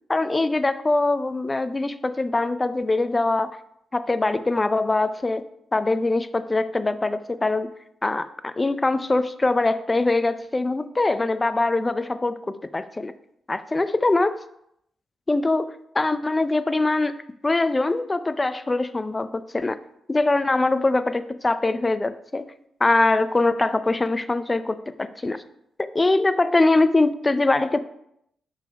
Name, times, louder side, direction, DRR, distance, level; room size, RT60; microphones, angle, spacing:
voice 1, 0.1-3.6 3.9-5.4 5.7-7.7 8.0-13.1 13.5-14.4 15.3-17.2 17.4-19.8 20.1-22.5 22.8-25.4 25.8-27.8, left 2 dB, 25° left, 12 dB, 0.5 m, -23 dB
5.3 x 4.0 x 5.1 m, 0.75 s
supercardioid pair, 50°, 0 cm